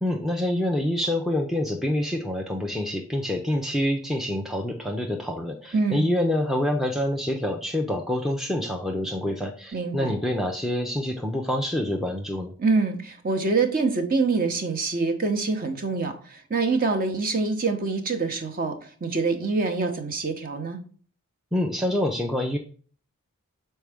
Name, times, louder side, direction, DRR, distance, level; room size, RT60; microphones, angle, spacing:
voice 1, 0.0-12.5 21.5-22.6, left 1 dB, ahead, 1 dB, 0.5 m, -26 dB
voice 2, 5.7-6.1 9.7-10.1 12.6-20.8, right 3 dB, 40° right, 5 dB, 0.9 m, -25 dB
6.2 x 4.4 x 3.5 m, 0.42 s
head